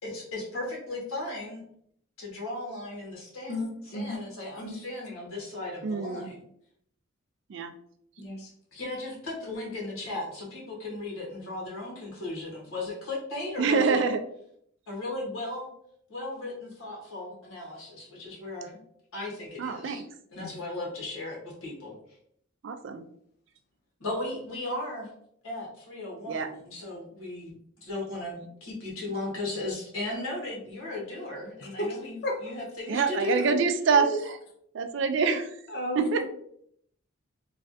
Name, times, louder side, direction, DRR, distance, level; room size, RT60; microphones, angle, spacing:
voice 1, 0.0-1.6 2.2-3.5 3.8-6.4 8.7-14.0 14.9-15.7 16.1-18.8 19.1-20.0 20.3-22.0 24.0-25.1 25.4-27.5 27.8-33.6, left 2 dB, 85° left, -3 dB, 1.2 m, -36 dB
voice 2, 3.5-4.2 4.6-4.8 8.2-8.5 20.4-20.5 31.8-32.0 32.2-32.4 33.9-34.2 35.7-36.3, equal, 50° left, 0 dB, 0.5 m, -33 dB
voice 3, 5.8-6.3 7.5-7.7 13.6-14.2 19.6-20.0 22.6-23.0 26.3-26.5 32.9-34.4 34.7-35.5 36.0-36.3, right 5 dB, 60° right, 8 dB, 0.3 m, -26 dB
3.2 x 2.4 x 2.6 m, 0.68 s
head